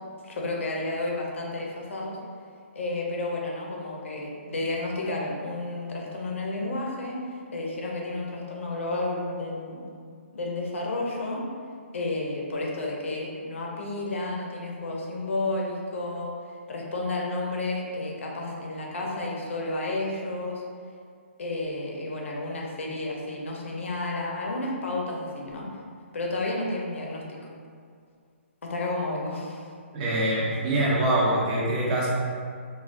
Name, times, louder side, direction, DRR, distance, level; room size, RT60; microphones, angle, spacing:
voice 1, 0.2-2.2 2.7-9.9 10.3-11.4 11.9-16.3 16.7-20.6 21.4-25.7 26.1-27.4 28.6-29.7, left 2 dB, 75° left, -2 dB, 0.7 m, -31 dB
voice 2, 29.9-32.1, right 1 dB, 35° right, -5 dB, 0.7 m, -24 dB
3.3 x 2.3 x 2.5 m, 2.2 s
hypercardioid pair, 150°, 7 cm